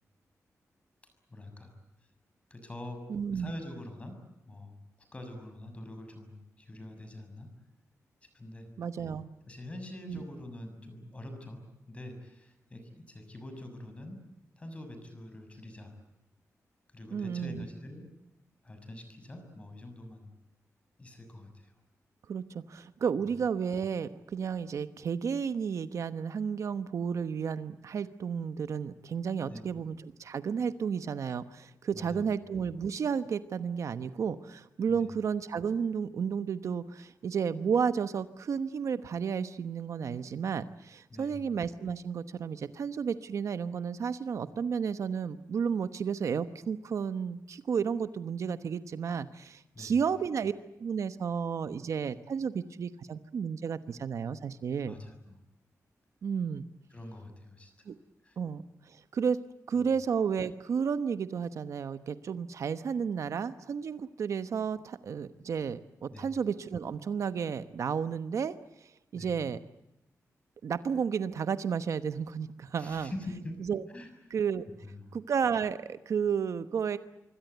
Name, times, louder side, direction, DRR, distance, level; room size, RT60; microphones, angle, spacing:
voice 1, 1.3-1.7 2.5-4.2 4.4-4.8 5.1-7.5 8.3-8.7 9.5-14.2 14.6-15.9 16.9-18.1 18.6-20.3 21.0-21.7 23.2-23.3 29.4-29.7 31.9-32.2 34.9-35.1 41.1-41.4 49.7-50.0 54.8-55.4 56.9-57.9 58.2-58.4 59.8-59.9 66.1-66.3 69.1-69.4 72.7-73.6 73.9-74.1 74.8-75.0, left 1 dB, 20° left, 6 dB, 6.5 m, -45 dB
voice 2, 3.1-3.5 8.8-9.3 10.1-10.2 17.1-17.7 22.3-50.5 50.8-54.9 56.2-56.7 57.9-58.0 58.4-59.4 59.7-69.6 70.6-73.1 73.7-73.8 74.3-74.7 75.1-77.0, right 6 dB, 65° right, 12 dB, 1.1 m, -32 dB
26.0 x 24.5 x 8.1 m, 0.89 s
wide cardioid pair, 170°, 6 cm